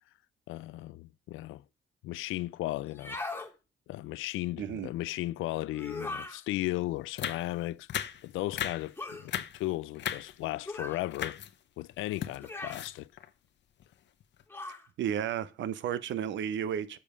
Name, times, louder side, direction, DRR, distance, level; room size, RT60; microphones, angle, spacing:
voice 1, 0.5-1.6 2.0-3.2 3.9-11.4 11.8-13.1, left 17 dB, 85° left, 0.4 m, -35 dB
sound 1, 2.9-3.5 5.7-6.4 9.0-9.3 10.7-11.0 12.4-12.9 14.5-14.9, left 2 dB, 10° left, 1.6 m, -39 dB
voice 2, 4.6-4.9 15.0-17.0, right 9 dB, 70° right, 0.7 m, -33 dB
sound 2, 6.6-6.7 7.2-7.5 7.9-8.2 8.5-8.9 9.2-9.6 9.9-10.6 11.1-11.5 11.9-13.3 13.8-13.9 14.2-14.4, left 10 dB, 65° left, 0.8 m, -36 dB
7.1 x 5.2 x 4.9 m
cardioid pair, 90°, 20 cm